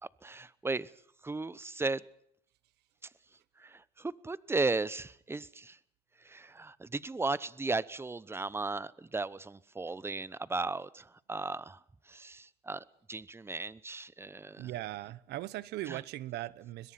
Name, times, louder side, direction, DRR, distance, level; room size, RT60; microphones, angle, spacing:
voice 1, 0.2-0.9 1.2-2.0 3.6-5.8 6.2-11.8 12.1-14.7 15.9-16.0, right 3 dB, 15° right, 0.8 m, -36 dB
voice 2, 14.6-16.9, right 15 dB, 80° right, 1.0 m, -39 dB
22.0 x 21.5 x 5.9 m
cardioid pair, 110°, 17 cm